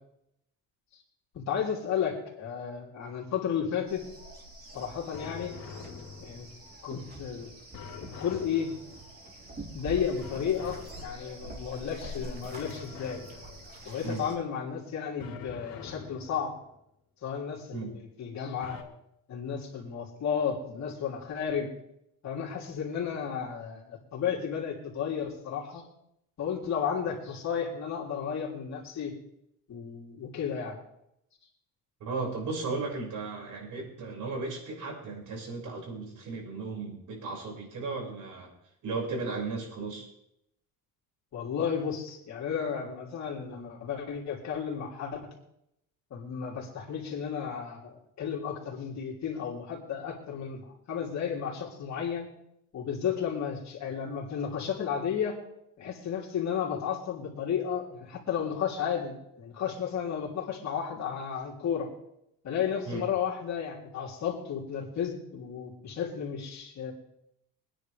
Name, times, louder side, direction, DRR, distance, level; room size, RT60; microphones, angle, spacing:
voice 1, 1.3-4.0 4.7-5.5 6.2-6.5 6.8-7.5 8.0-8.7 9.7-13.2 13.8-16.5 17.2-18.8 19.3-21.7 22.2-25.8 26.4-29.1 29.7-30.8 41.3-45.3 46.1-52.3 52.7-55.4 55.8-61.9 62.4-66.9, left 7 dB, 50° left, -2 dB, 3.3 m, -33 dB
sound 1, 3.9-14.4, right 1 dB, 25° right, 3.6 m, -45 dB
sound 2, 5.1-6.7 7.7-9.3 10.2-11.5 12.6-13.9 15.2-16.7 18.6-18.8, left 5 dB, 70° left, 3.0 m, -45 dB
voice 2, 32.0-38.5 38.8-40.1 62.9-63.0, right 3 dB, 55° right, -1 dB, 6.1 m, -35 dB
23.5 x 10.0 x 3.5 m, 0.78 s
cardioid pair, 120°, 36 cm